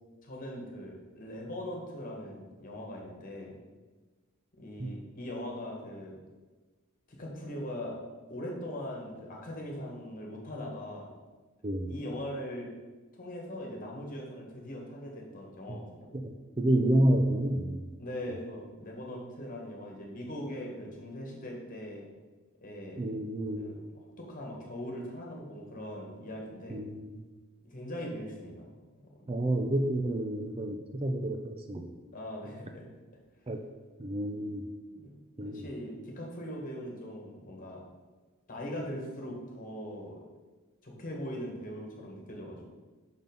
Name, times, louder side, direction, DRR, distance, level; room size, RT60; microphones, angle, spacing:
voice 1, 0.2-3.6 4.6-6.2 7.1-8.0 8.3-11.1 11.8-12.7 13.1-16.1 18.0-22.1 22.6-23.1 23.5-23.8 24.2-26.8 27.6-29.6 32.1-32.8 34.9-35.1 35.4-37.8 38.5-40.2 40.8-42.7, left 1 dB, 40° left, -1 dB, 1.7 m, -41 dB
voice 2, 11.6-11.9 15.7-15.8 16.1-17.8 23.0-23.8 26.7-27.2 29.3-31.9 33.5-33.6 34.0-34.6 35.4-35.6, right 1 dB, 25° right, 4 dB, 0.5 m, -29 dB
5.9 x 5.6 x 5.3 m, 1.3 s
head